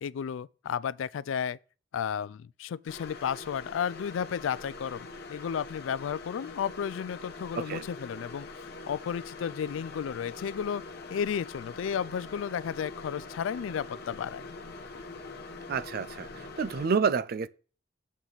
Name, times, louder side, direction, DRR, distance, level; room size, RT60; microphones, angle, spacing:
voice 1, 0.0-1.6 1.9-8.5 8.9-10.8 11.1-14.5, left 7 dB, 85° left, 0.3 m, -33 dB
sound 1, 2.9-16.9, left 3 dB, 55° left, 1.0 m, -44 dB
voice 2, 7.5-7.9 15.7-17.5, right 5 dB, 50° right, 0.4 m, -29 dB
8.1 x 7.3 x 3.9 m
head